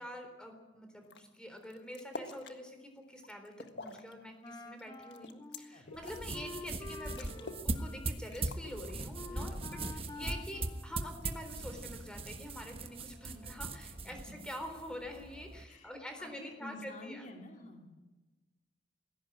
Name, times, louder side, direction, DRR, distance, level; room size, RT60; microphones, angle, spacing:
voice 1, 0.0-14.2 14.4-17.3, equal, 5° left, 5 dB, 3.8 m, -46 dB
sound 1, 1.0-1.2 1.6-2.6 3.0-4.1 4.5-6.3 6.7-6.8 7.0-7.7 8.0-8.1 8.3-9.4 9.8-10.3 11.2-11.7, left 3 dB, 60° left, 1.7 m, -48 dB
Wind instrument woodwind instrument, 4.4-11.6, left 2 dB, 20° left, 1.1 m, -49 dB
sound 2, 6.0-15.6, right 2 dB, 30° right, 1.4 m, -40 dB
voice 2, 9.5-9.9 14.0-14.2 15.7-15.9 16.2-18.0, left 2 dB, 40° left, 3 dB, 2.7 m, -50 dB
20.0 x 17.0 x 10.0 m, 1.2 s
head